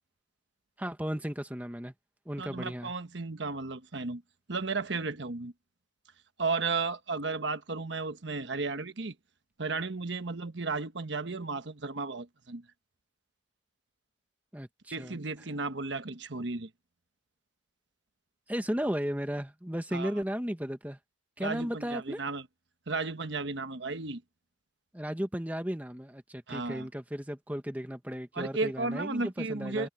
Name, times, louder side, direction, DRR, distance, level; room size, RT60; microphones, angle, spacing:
voice 1, 0.8-1.9 2.2-2.9 14.5-15.2 18.5-21.0 21.4-22.2 24.9-29.9, equal, 10° right, 1.3 m, -35 dB
voice 2, 2.4-4.2 4.5-5.5 6.4-9.1 9.6-12.6 14.9-16.7 19.9-20.1 21.4-22.4 22.9-24.2 26.5-26.9 28.3-29.9, right 3 dB, 70° right, 1.2 m, -34 dB
head